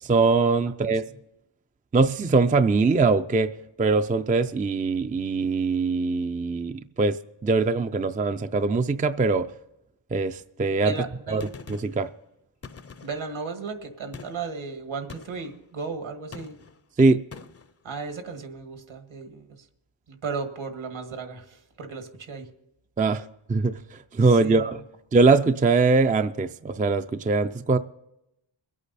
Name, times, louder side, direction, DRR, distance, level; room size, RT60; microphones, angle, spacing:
voice 1, 0.0-1.1 1.9-3.5 3.8-9.5 10.1-11.0 11.3-12.1 17.0-17.2 23.0-24.8 25.1-27.8, right 3 dB, 20° right, 0.4 m, -22 dB
voice 2, 10.8-11.4 13.0-16.6 17.8-19.5 20.1-22.5 24.4-24.6, right 4 dB, 65° right, 2.0 m, -35 dB
Gunshot gunfire, 11.4-12.1 12.6-13.3 14.1-14.5 15.1-15.5 16.3-16.8 17.3-17.7, left 5 dB, 30° left, 0.6 m, -44 dB
22.5 x 8.6 x 4.1 m
wide cardioid pair, 100°, 50 cm